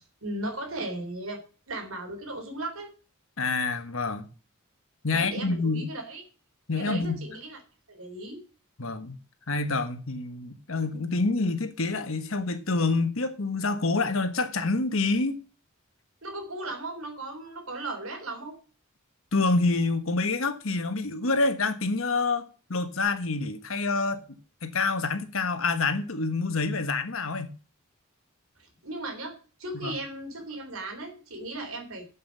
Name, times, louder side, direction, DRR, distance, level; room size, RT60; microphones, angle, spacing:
voice 1, 0.0-1.4 1.7-2.9 5.1-6.2 6.8-7.6 7.9-8.4 16.2-18.5 28.8-29.3 29.6-32.1, right 2 dB, 75° right, 3.5 m, -36 dB
voice 2, 3.4-4.3 5.0-5.9 6.7-7.2 8.8-9.2 9.5-15.4 19.3-27.5 29.7-30.0, left 3 dB, 70° left, 1.4 m, -27 dB
7.6 x 7.5 x 7.2 m
head